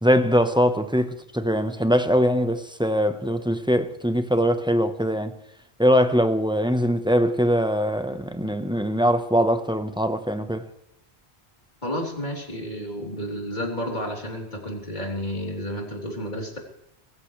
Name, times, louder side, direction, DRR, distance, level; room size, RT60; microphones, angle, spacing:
voice 1, 0.0-5.3 5.8-10.6, equal, 5° right, 1.0 m, -22 dB
voice 2, 11.8-16.6, equal, 45° left, 3.7 m, -31 dB
23.0 x 13.5 x 3.3 m
omnidirectional pair, 1.1 m